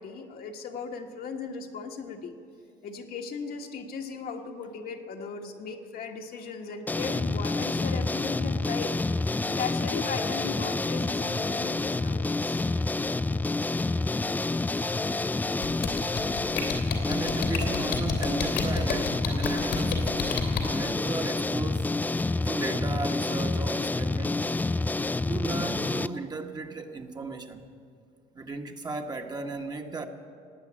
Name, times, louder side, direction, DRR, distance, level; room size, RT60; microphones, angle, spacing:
voice 1, 0.0-2.3 2.8-8.9 9.5-12.7, left 5 dB, 60° left, 1.4 m, -37 dB
sound 1, 6.9-26.1, left 3 dB, 10° left, 0.3 m, -28 dB
sound 2, 15.6-20.6, left 8 dB, 85° left, 2.8 m, -30 dB
voice 2, 17.1-20.3 20.7-22.0 22.4-24.6 25.2-27.7 28.3-30.1, right 3 dB, 25° right, 1.2 m, -35 dB
17.0 x 9.2 x 8.7 m
cardioid pair, 110°, 17 cm